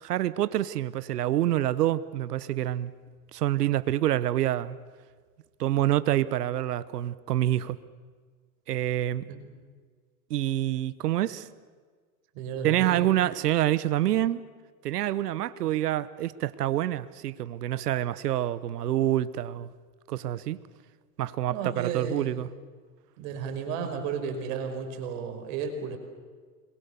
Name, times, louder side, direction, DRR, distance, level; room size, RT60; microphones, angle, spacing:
voice 1, 0.0-2.9 3.3-4.8 5.6-7.8 8.7-9.3 10.3-11.5 12.6-14.4 14.8-19.7 20.1-20.6 21.2-22.5, right 13 dB, 80° right, 1.1 m, -27 dB
voice 2, 12.3-13.0 21.5-22.5 23.2-26.0, right 6 dB, 55° right, 4.9 m, -33 dB
28.0 x 22.0 x 7.0 m
hypercardioid pair, 115°, 46 cm